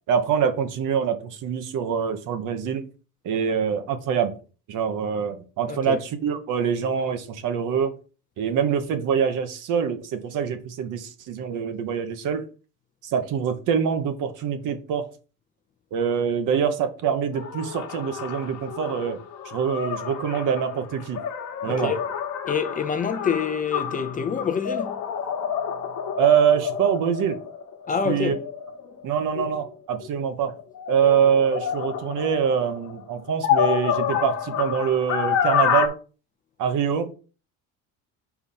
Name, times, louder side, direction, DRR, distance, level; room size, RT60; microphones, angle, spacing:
voice 1, 0.1-2.8 3.2-4.3 4.7-7.9 8.4-12.4 13.0-15.0 15.9-21.2 21.6-21.9 26.2-27.4 28.0-28.4 29.0-30.5 30.9-35.9 36.6-37.1, right 7 dB, 60° right, 1.1 m, -24 dB
voice 2, 5.7-6.0 21.7-22.0 22.5-25.0 27.9-28.4, left 6 dB, 25° left, 0.6 m, -26 dB
sound 1, 17.3-30.1 30.6-35.9, left 8 dB, 55° left, 1.2 m, -29 dB
4.7 x 4.2 x 5.4 m
cardioid pair, 135°, 35 cm